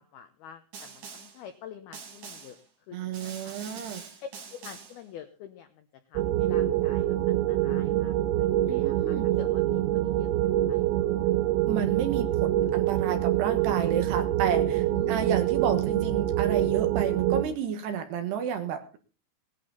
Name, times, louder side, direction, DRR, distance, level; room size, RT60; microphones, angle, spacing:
voice 1, 0.0-2.6 2.9-3.6 4.5-10.8 14.9-15.3, left 9 dB, 80° left, 8 dB, 2.2 m, -48 dB
Snare drum, 0.7-1.4 1.9-2.6 3.1-5.0, right 6 dB, 45° right, 3.2 m, -44 dB
voice 2, 2.9-4.0 8.7-9.4 11.7-19.0, right 8 dB, 65° right, 7 dB, 3.0 m, -31 dB
sound 1, 6.2-17.4, right 13 dB, 90° right, 3.6 m, -25 dB
19.0 x 11.5 x 4.0 m, 0.35 s
omnidirectional pair, 5.8 m